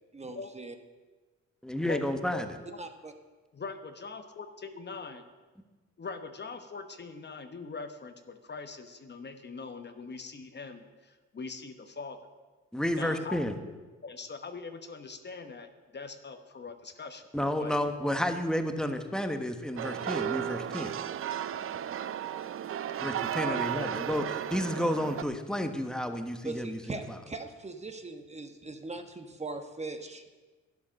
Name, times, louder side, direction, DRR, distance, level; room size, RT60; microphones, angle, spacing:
voice 1, 0.1-0.7 2.8-3.1 26.4-30.2, right 3 dB, 20° right, 6 dB, 1.2 m, -40 dB
voice 2, 1.6-2.5 12.7-13.5 17.3-20.9 23.0-26.8, left 1 dB, ahead, 7 dB, 1.3 m, -31 dB
voice 3, 2.3-2.8 3.5-5.2 6.0-12.2 12.9-13.4 14.0-17.3 17.6-17.7 23.5-23.9, left 4 dB, 35° left, 7 dB, 1.1 m, -42 dB
sound 1, 19.8-25.2, right 10 dB, 45° right, 0.5 m, -34 dB
12.0 x 10.5 x 6.4 m, 1.3 s
cardioid pair, 90°, 30 cm